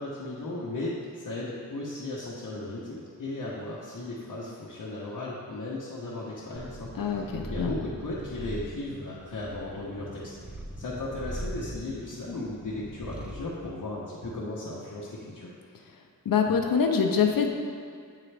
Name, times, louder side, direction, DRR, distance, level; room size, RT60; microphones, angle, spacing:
voice 1, 0.0-10.3 10.8-15.5, left 2 dB, 70° left, -8 dB, 0.9 m, -36 dB
Purr, 6.6-13.5, right 1 dB, 5° right, 0.4 m, -41 dB
voice 2, 7.0-7.7 16.3-17.5, left 6 dB, 85° left, 3 dB, 0.6 m, -24 dB
8.7 x 3.7 x 3.3 m, 2.3 s
wide cardioid pair, 105°, 33 cm